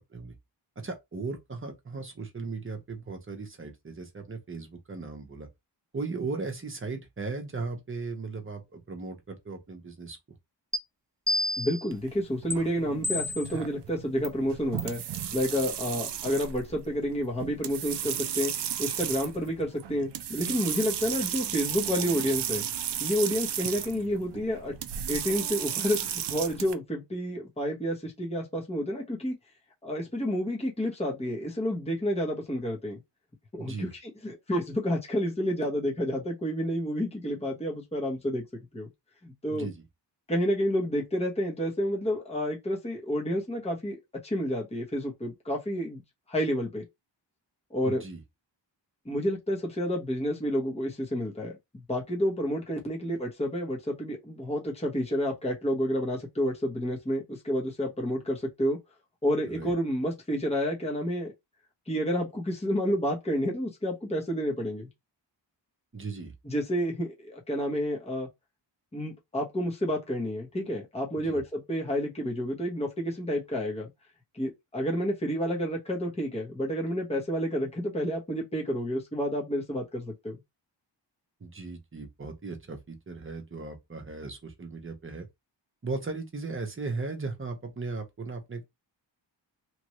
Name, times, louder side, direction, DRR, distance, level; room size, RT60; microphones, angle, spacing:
voice 1, 0.8-5.5 5.9-10.2 33.6-33.9 39.5-39.8 47.8-48.2 59.5-59.7 65.9-66.3 71.2-71.4 81.4-85.3 85.8-88.6, right 3 dB, 30° right, 0.9 m, -37 dB
sound 1, 10.7-10.8 11.3-11.9 12.5-12.6 13.0-13.6 14.2-14.3 14.8-15.0, left 1 dB, 5° right, 0.4 m, -30 dB
voice 2, 11.6-15.0 15.3-18.5 18.8-22.6 23.0-24.7 25.1-29.3 29.8-33.0 33.5-38.4 38.7-38.9 39.2-39.7 40.3-46.0 46.3-46.8 47.7-48.0 49.0-51.6 51.9-58.8 59.2-61.3 61.9-64.9 66.4-68.3 68.9-73.9 74.3-80.4, equal, 15° left, 1.0 m, -30 dB
sound 2, 11.9-26.7, right 10 dB, 65° right, 0.5 m, -34 dB
3.1 x 2.5 x 3.0 m
wide cardioid pair, 105°, 45 cm